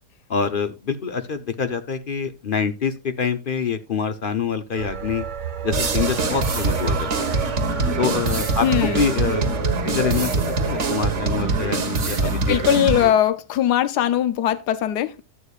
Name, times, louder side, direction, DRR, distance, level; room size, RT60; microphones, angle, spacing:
voice 1, 0.3-5.3 5.6-7.4 8.0-9.4 9.8-10.3 10.6-12.6, left 6 dB, 45° left, 0.7 m, -26 dB
sound 1, 4.8-11.7, right 7 dB, 85° right, 1.8 m, -33 dB
sound 2, 5.7-13.1, right 3 dB, 50° right, 1.6 m, -23 dB
voice 2, 8.6-9.0 12.2-15.2, left 11 dB, 75° left, 1.4 m, -20 dB
12.5 x 8.1 x 2.5 m
omnidirectional pair, 1.8 m